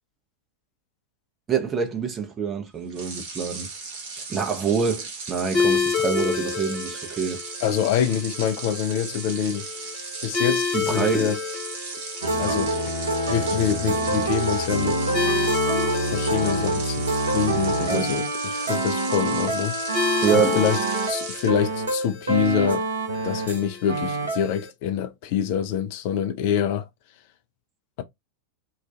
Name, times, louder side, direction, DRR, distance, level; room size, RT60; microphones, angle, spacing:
voice 1, 1.5-3.7 4.3-7.4 10.7-11.3 12.2-12.3 17.8-18.1 20.2-20.6, right 6 dB, 20° right, 0.5 m, -26 dB
sound 1, 2.9-21.5, right 4 dB, 50° right, 0.9 m, -37 dB
sound 2, 5.5-24.7, left 6 dB, 25° left, 0.8 m, -31 dB
voice 2, 7.6-9.7 10.2-11.4 12.4-12.9 13.3-15.0 16.0-20.8 21.1-22.8 23.2-26.9, left 8 dB, 45° left, 0.4 m, -26 dB
sound 3, 12.2-23.6 23.9-24.5, right 2 dB, 70° right, 0.6 m, -26 dB
2.4 x 2.2 x 2.4 m
figure-of-eight pair, 90°, 0 cm